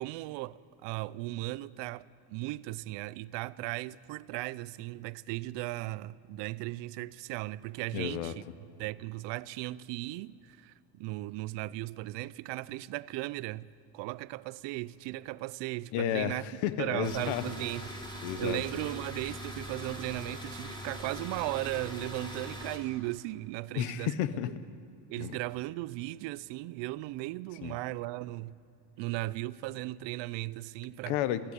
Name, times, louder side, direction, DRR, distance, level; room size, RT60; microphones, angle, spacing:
voice 1, 0.0-8.4 8.8-13.7 13.9-16.4 16.8-17.9 18.3-24.1 25.1-28.6 29.0-31.2, right 18 dB, 60° right, 0.6 m, -37 dB
voice 2, 7.9-8.3 15.9-17.4 18.2-18.6 23.7-24.5 25.2-25.4 27.6-27.8 31.1-31.5, left 11 dB, 75° left, 1.1 m, -32 dB
sound 1, 17.0-22.8, equal, 10° left, 2.7 m, -41 dB
21.5 x 15.0 x 8.3 m
cardioid pair, 145°, 50 cm